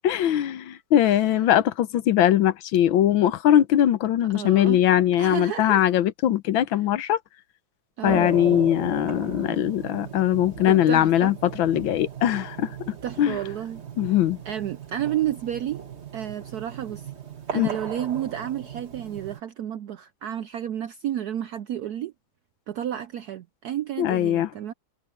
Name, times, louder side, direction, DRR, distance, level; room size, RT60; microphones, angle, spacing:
voice 1, 0.0-7.2 8.0-13.4 14.0-14.4 17.5-17.7 24.0-24.5, left 11 dB, 75° left, 1.5 m, -21 dB
voice 2, 1.0-1.4 4.3-4.8 5.2-5.9 8.0-8.3 10.7-11.3 13.0-13.8 14.1-14.2 14.4-15.8 16.1-17.1 17.5-22.1 22.7-24.7, right 11 dB, 75° right, 0.9 m, -31 dB
sound 1, 8.1-19.4, right 6 dB, 35° right, 1.9 m, -37 dB
omnidirectional pair, 2.2 m